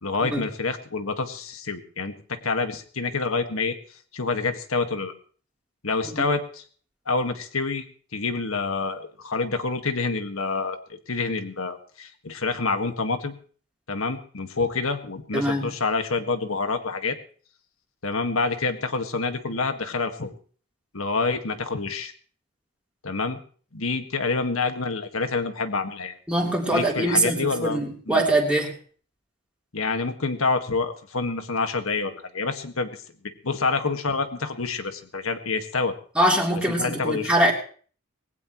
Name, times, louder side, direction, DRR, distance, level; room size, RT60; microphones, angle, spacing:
voice 1, 0.0-3.8 4.1-5.1 5.8-6.6 7.1-7.8 8.1-10.8 11.1-13.4 13.9-17.2 18.0-20.3 20.9-22.1 23.0-23.4 23.7-26.1 26.7-27.8 28.1-28.2 29.7-32.9 33.4-35.9 36.8-37.3, left 4 dB, 90° left, 7 dB, 1.8 m, -27 dB
voice 2, 15.3-15.7 26.3-28.7 36.2-37.5, right 1 dB, 5° right, -2 dB, 3.4 m, -23 dB
20.5 x 18.0 x 3.1 m, 0.43 s
head